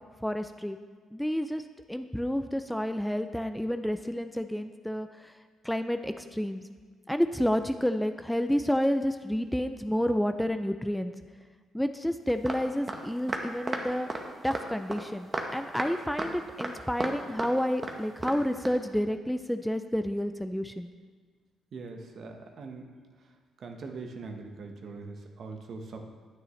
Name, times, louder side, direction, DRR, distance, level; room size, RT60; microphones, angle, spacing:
voice 1, 0.2-0.8 1.1-5.3 5.6-6.6 7.1-11.1 11.7-14.1 14.4-20.9, equal, 5° left, 8 dB, 0.4 m, -30 dB
sound 1, 12.5-12.6 12.9-13.0 13.3-13.8 14.1-14.2 14.5-14.6 14.9-15.0 15.3-15.5 15.7-15.9 16.2-16.3 16.6-17.1 17.4-17.5 17.8-17.9 18.2-18.3 18.7-18.8, right 2 dB, 25° right, 1.0 m, -32 dB
voice 2, 21.7-22.8 23.6-26.0, right 4 dB, 55° right, 3 dB, 1.1 m, -42 dB
9.7 x 9.1 x 3.2 m, 1.5 s
cardioid pair, 90°, 0 cm